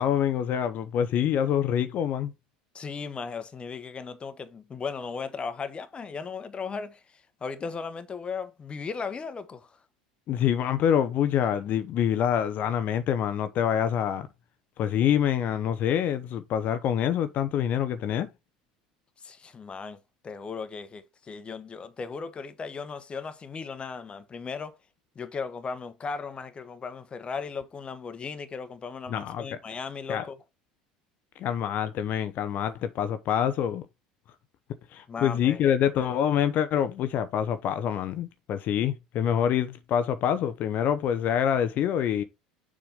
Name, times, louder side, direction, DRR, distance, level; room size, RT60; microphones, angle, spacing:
voice 1, 0.0-2.3 10.3-14.3 14.8-18.3 29.1-29.5 30.1-30.2 31.4-33.8 34.9-42.2, left 9 dB, 45° left, 0.8 m, -26 dB
voice 2, 2.7-9.8 19.2-24.8 25.1-30.4 35.1-35.7, left 5 dB, 25° left, 1.2 m, -37 dB
6.9 x 3.7 x 5.2 m
hypercardioid pair, 70°, 4 cm